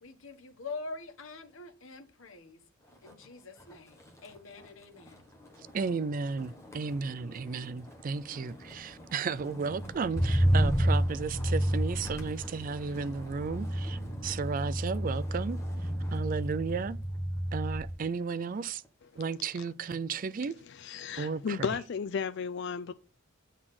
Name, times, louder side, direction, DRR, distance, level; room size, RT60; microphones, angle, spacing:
voice 1, 0.0-2.6 3.0-5.2, left 3 dB, 85° left, 1.3 m, -44 dB
Motor vehicle (road), 2.9-3.3 3.6-18.0 18.4-18.9, equal, 15° left, 1.5 m, -32 dB
voice 2, 5.6-17.0 17.5-18.8 19.2-20.6 21.2-21.8, right 5 dB, 40° right, 0.4 m, -34 dB
voice 3, 20.7-22.9, left 6 dB, 60° left, 0.4 m, -34 dB
7.8 x 4.1 x 5.9 m
head